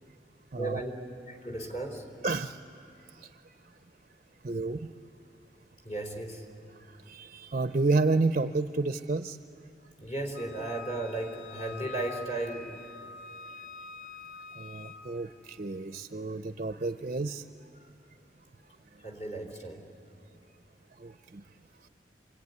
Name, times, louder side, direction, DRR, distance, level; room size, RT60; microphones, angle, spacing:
voice 1, 0.6-0.9 1.3-2.1 5.8-6.4 10.0-12.8 19.0-19.8, right 2 dB, 45° left, 2 dB, 3.7 m, -35 dB
voice 2, 2.2-2.6 3.2-3.3 4.4-4.9 7.1-9.4 14.6-17.4 21.0-21.4, right 3 dB, 45° right, 9 dB, 0.5 m, -30 dB
Wind instrument woodwind instrument, 10.3-15.0, left 5 dB, 75° left, 1.3 m, -45 dB
26.0 x 23.0 x 9.6 m, 2.7 s
head